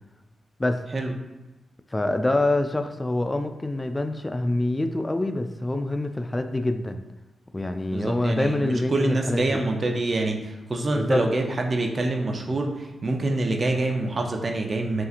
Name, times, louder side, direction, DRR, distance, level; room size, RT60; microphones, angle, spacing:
voice 1, 1.9-7.0 7.5-9.6 10.9-11.2, left 1 dB, 20° left, 8 dB, 0.3 m, -25 dB
voice 2, 7.9-15.0, right 2 dB, 50° right, 3 dB, 0.6 m, -26 dB
5.4 x 2.8 x 2.5 m, 1.1 s
cardioid pair, 55°, 0 cm